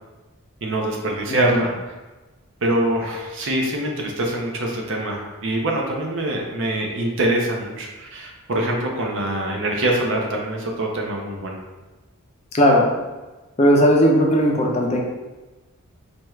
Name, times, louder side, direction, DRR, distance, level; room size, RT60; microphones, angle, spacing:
voice 1, 0.6-1.9 2.6-11.5, right 1 dB, 55° right, 0 dB, 0.7 m, -24 dB
voice 2, 1.3-1.6 12.5-12.9 13.6-15.0, equal, 30° left, -1 dB, 0.4 m, -17 dB
4.3 x 2.3 x 3.1 m, 1.2 s
head